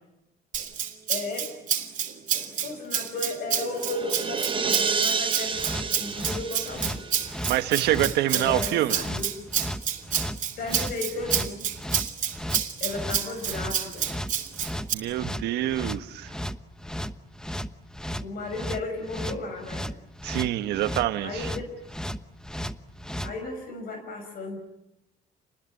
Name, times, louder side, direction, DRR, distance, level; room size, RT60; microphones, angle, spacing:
Rattle (instrument), 0.5-14.9, right 9 dB, 50° right, 3.1 m, -29 dB
voice 1, 1.1-1.6 2.3-7.0 8.3-9.3 10.6-11.7 12.8-14.1 18.2-19.9 21.2-21.7 23.2-24.6, left 2 dB, 60° left, 5 dB, 5.9 m, -34 dB
sound 1, 3.2-7.8, right 5 dB, 30° right, 1.1 m, -30 dB
sound 2, 5.5-23.3, equal, 5° left, 1.1 m, -35 dB
voice 2, 7.5-9.0 14.9-16.3 20.2-21.5, right 14 dB, 80° right, 10 dB, 1.5 m, -26 dB
29.5 x 20.5 x 8.6 m, 0.90 s
cardioid pair, 110°, 17 cm